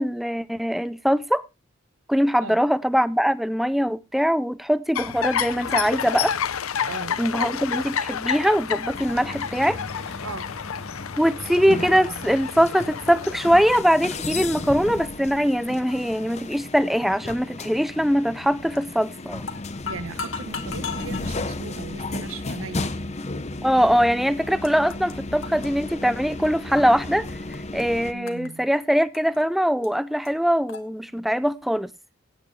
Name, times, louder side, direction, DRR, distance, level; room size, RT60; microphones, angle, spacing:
voice 1, 0.0-1.4 2.1-6.3 7.2-9.8 11.2-19.5 23.6-27.3 27.7-31.9, equal, ahead, 0.5 m, -22 dB
sound 1, 5.0-13.8, left 7 dB, 85° left, 0.7 m, -30 dB
voice 2, 6.8-7.2 10.2-10.5 19.8-23.2 28.1-28.7, right 3 dB, 75° right, 1.1 m, -37 dB
sound 2, 8.9-28.1, left 2 dB, 30° left, 0.8 m, -34 dB
sound 3, 18.7-19.0 19.4-21.5 22.2-22.4 23.2-23.3 24.1-24.2 24.4-25.2 25.4-27.0 27.3-27.8 28.3-29.4 29.8-29.9 30.2-30.3 30.7-30.8, left 5 dB, 65° left, 1.6 m, -36 dB
16.5 x 9.1 x 3.2 m
head